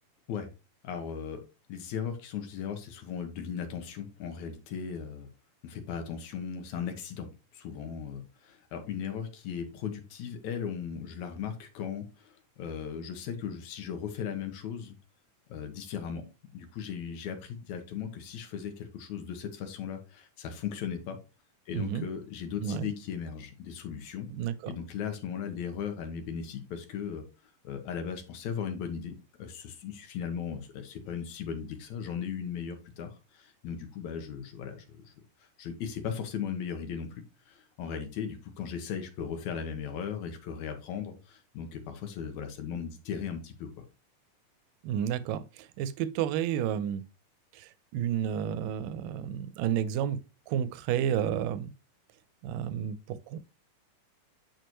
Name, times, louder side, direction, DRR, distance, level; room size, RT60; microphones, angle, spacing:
voice 1, 0.8-1.4 1.7-5.3 5.6-15.0 15.5-16.2 16.5-21.2 21.7-24.3 24.7-27.2 27.6-29.1 29.4-35.1 35.6-43.8, left 7 dB, 70° left, 2.1 m, -37 dB
voice 2, 21.7-22.0 22.6-22.9 24.3-24.5 44.8-47.0 47.5-50.2 50.5-51.7 52.4-53.4, right 9 dB, 80° right, 2.1 m, -31 dB
9.2 x 4.8 x 3.0 m
omnidirectional pair, 4.0 m